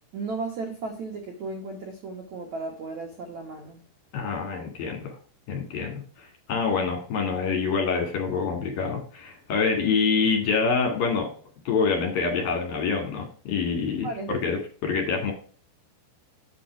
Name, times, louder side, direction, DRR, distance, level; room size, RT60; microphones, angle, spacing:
voice 1, 0.1-3.8 14.0-14.6, right 3 dB, 65° right, 2 dB, 1.8 m, -35 dB
voice 2, 4.1-5.2 5.5-11.3 11.7-15.3, left 5 dB, 55° left, 2 dB, 3.6 m, -26 dB
8.7 x 6.1 x 4.7 m, 0.41 s
omnidirectional pair, 5.4 m